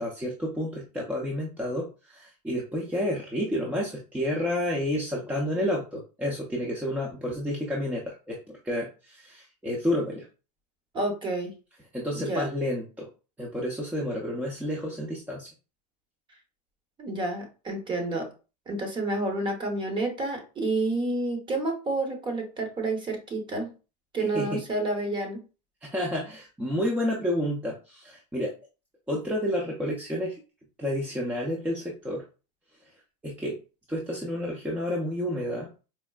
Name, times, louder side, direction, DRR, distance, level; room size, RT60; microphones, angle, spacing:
voice 1, 0.0-10.2 11.9-13.1 13.4-15.5 24.2-24.6 25.8-28.5 29.1-30.4 30.8-32.2 33.2-33.6 33.9-35.7, left 1 dB, 5° right, -3 dB, 0.6 m, -30 dB
voice 2, 10.9-11.5 12.2-12.5 17.0-18.3 18.7-23.7 24.1-25.4, right 2 dB, 25° right, 3 dB, 0.9 m, -29 dB
4.4 x 2.0 x 2.3 m, 0.33 s
supercardioid pair, 125°, 20 cm